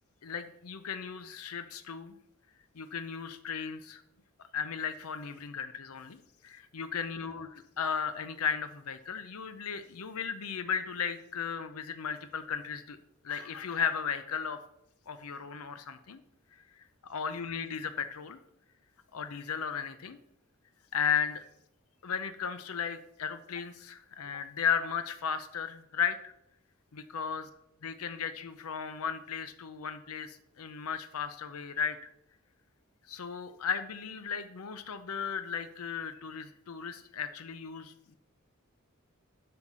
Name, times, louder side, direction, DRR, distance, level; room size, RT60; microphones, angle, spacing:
voice 1, 0.2-2.2 2.7-4.0 4.5-13.0 13.2-14.6 15.1-16.2 17.0-18.4 19.1-20.2 20.9-21.4 22.0-26.3 26.9-27.5 27.8-32.0 33.1-38.1, left 7 dB, 85° left, 11 dB, 0.6 m, -35 dB
7.7 x 5.9 x 6.0 m, 0.78 s
head